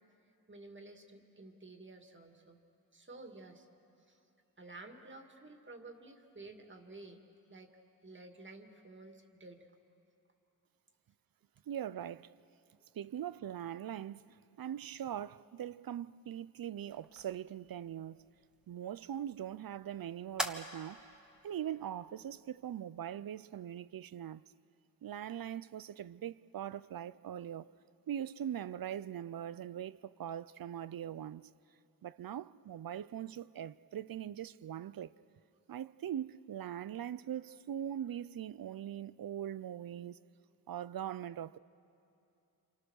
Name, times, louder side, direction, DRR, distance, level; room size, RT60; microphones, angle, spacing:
voice 1, 0.5-2.6 2.9-3.7 4.1-4.2 4.6-7.2 7.5-7.7 8.0-9.7, right 2 dB, 30° right, 2.3 m, -52 dB
voice 2, 11.7-12.3 12.9-18.2 18.7-21.0 21.4-24.4 25.0-27.7 28.1-31.5 32.0-35.1 35.7-40.2 40.7-41.6, right 10 dB, 65° right, 0.6 m, -41 dB
sound 1, 16.9-23.8, equal, ahead, 1.6 m, -47 dB
28.0 x 27.5 x 6.5 m
wide cardioid pair, 85°, 37 cm